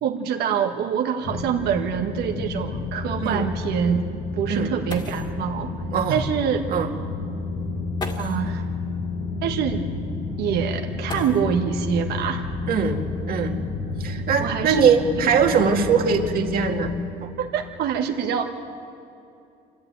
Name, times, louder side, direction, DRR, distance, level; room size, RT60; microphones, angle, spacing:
voice 1, 0.0-4.0 4.4-5.7 6.1-6.7 8.2-8.7 9.4-9.9 10.4-12.5 14.4-14.8 15.2-15.3 17.4-18.4, right 8 dB, 80° right, 3 dB, 1.4 m, -25 dB
sound 1, 1.0-1.1 1.5-1.6 2.2-2.3 4.5-4.6 4.9-5.4 6.7-6.8 7.9-8.5 11.0-11.8 13.2-13.3 14.0-15.4 16.1-16.5 16.9-17.3, left 2 dB, 25° left, 2.3 m, -38 dB
sound 2, 1.2-17.0, left 4 dB, 80° left, 3.0 m, -30 dB
voice 2, 12.7-13.0 13.3-13.6 14.0-16.9 17.2-17.3, right 6 dB, 60° right, 2 dB, 2.3 m, -21 dB
26.5 x 12.5 x 9.2 m, 2.6 s
cardioid pair, 110°, 17 cm